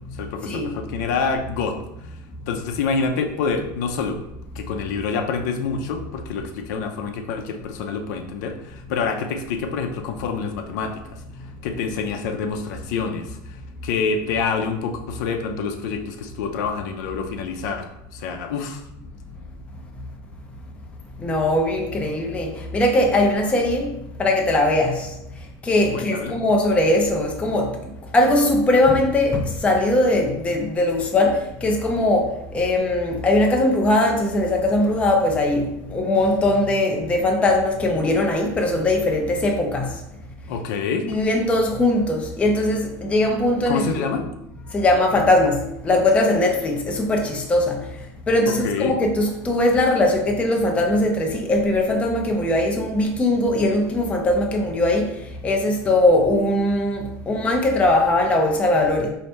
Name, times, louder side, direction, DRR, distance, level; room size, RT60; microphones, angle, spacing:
voice 1, 0.2-1.8 2.5-4.2 4.6-11.0 11.6-13.4 13.8-18.8 25.9-26.4 40.5-41.1 43.7-44.2 48.5-49.0, left 5 dB, 80° left, 5 dB, 0.6 m, -27 dB
voice 2, 21.2-25.1 25.6-27.8 28.1-39.9 41.1-43.8 44.7-47.8 48.3-55.1 55.4-59.1, left 1 dB, 15° left, 1 dB, 0.5 m, -20 dB
4.1 x 2.7 x 3.3 m, 0.82 s
supercardioid pair, 140°, 10 cm